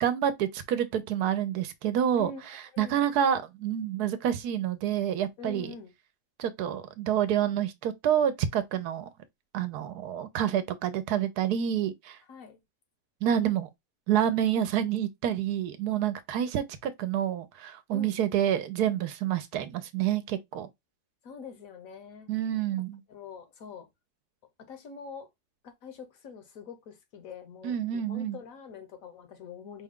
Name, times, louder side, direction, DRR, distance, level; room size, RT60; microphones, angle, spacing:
voice 1, 0.0-2.3 2.8-5.7 6.4-9.1 9.5-12.2 13.2-13.7 14.1-20.7 22.3-23.0 27.6-28.4, right 10 dB, 80° right, 1.2 m, -28 dB
voice 2, 5.4-5.9 12.3-12.6 17.9-18.2 21.2-22.3 23.1-23.9 24.6-25.3 25.6-29.8, left 5 dB, 65° left, 1.2 m, -44 dB
4.9 x 2.2 x 3.6 m
omnidirectional pair, 1.7 m